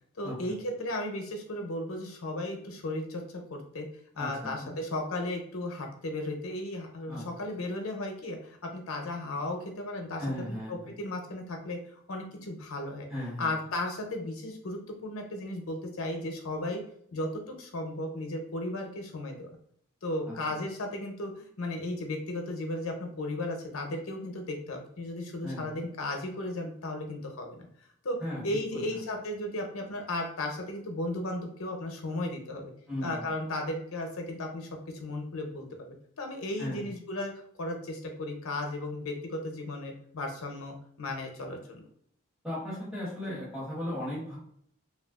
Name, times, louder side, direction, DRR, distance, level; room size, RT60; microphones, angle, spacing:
voice 1, 0.2-3.9 4.2-13.1 13.4-16.8 17.1-19.5 20.0-27.7 28.0-28.2 28.4-32.7 33.0-37.3 37.6-41.8, left 1 dB, 90° left, 3 dB, 0.7 m, -35 dB
voice 2, 10.2-10.9 13.1-13.5 20.3-20.4 25.4-25.6 28.2-28.4 28.7-28.8 32.9-33.3 36.6-36.8 42.4-44.4, left 1 dB, 5° right, -9 dB, 1.0 m, -36 dB
3.2 x 2.4 x 2.3 m, 0.68 s
head